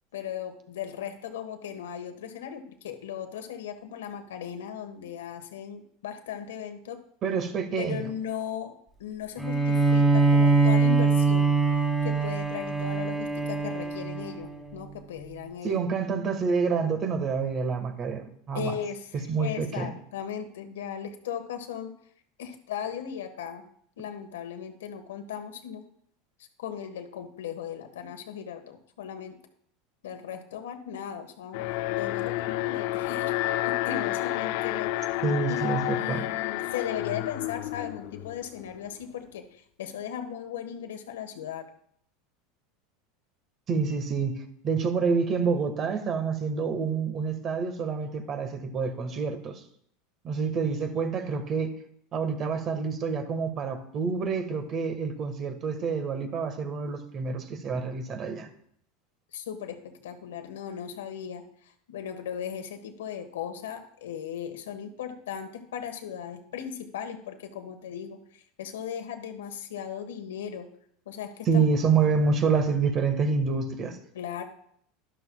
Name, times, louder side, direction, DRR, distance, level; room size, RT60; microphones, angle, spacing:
voice 1, 0.1-7.0 7.8-8.7 9.0-11.5 12.0-15.8 18.5-21.9 22.4-23.6 24.0-25.8 26.4-29.4 30.0-31.6 31.9-33.3 33.6-34.9 35.5-41.7 59.3-70.7 71.0-71.6 72.0-72.1 74.1-74.4, left 8 dB, 90° left, 1.4 m, -37 dB
voice 2, 7.2-8.1 15.6-18.7 19.1-19.9 35.2-36.2 43.7-49.6 50.2-51.7 52.1-58.5 71.5-74.0, right 5 dB, 40° right, 1.6 m, -27 dB
Bowed string instrument, 9.4-14.8, right 3 dB, ahead, 2.4 m, -23 dB
Alarm, 31.5-38.6, left 16 dB, 65° left, 0.4 m, -30 dB
12.0 x 11.5 x 2.3 m
supercardioid pair, 110°, 0 cm